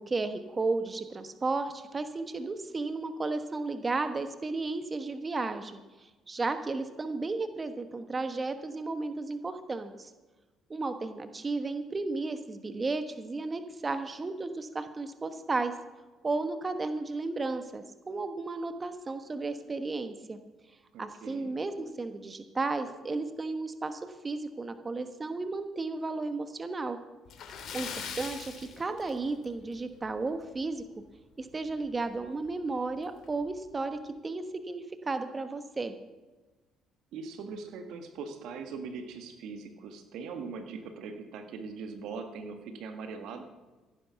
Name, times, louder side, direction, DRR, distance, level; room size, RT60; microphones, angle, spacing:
voice 1, 0.0-10.1 10.7-15.7 16.2-20.4 21.0-27.0 27.7-30.8 31.4-36.0, right 3 dB, 30° right, 8 dB, 1.2 m, -34 dB
voice 2, 20.9-21.5 37.1-43.4, right 4 dB, 70° right, 6 dB, 1.6 m, -41 dB
Splash splatter, 27.3-29.6 29.9-30.1 30.6-30.7 32.1-32.2 32.5-32.6 33.2-33.5, left 6 dB, 65° left, 2.4 m, -41 dB
15.5 x 9.7 x 5.8 m, 1.2 s
hypercardioid pair, 60°, 0 cm